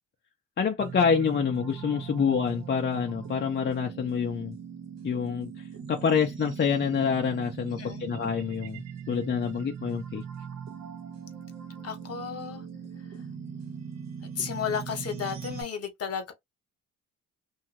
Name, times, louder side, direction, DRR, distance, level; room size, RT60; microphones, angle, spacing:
voice 1, 0.6-4.6 5.0-5.5 5.9-10.2, left 6 dB, 35° left, 0.5 m, -27 dB
sound 1, 0.8-15.6, right 7 dB, 60° right, 1.0 m, -40 dB
voice 2, 7.8-8.1 11.8-12.6 14.4-16.3, left 7 dB, 55° left, 1.0 m, -33 dB
2.6 x 2.3 x 2.9 m
cardioid pair, 90°, 30 cm